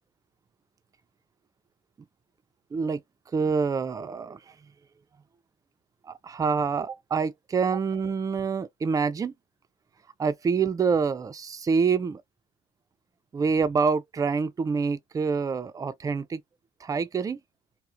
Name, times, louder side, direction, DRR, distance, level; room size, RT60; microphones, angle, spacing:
voice 1, 3.3-4.4 6.2-9.3 10.2-12.2 13.3-16.4 16.8-17.4, right 5 dB, 20° right, 0.4 m, -26 dB
2.4 x 2.1 x 2.6 m
cardioid pair, 105°, 16 cm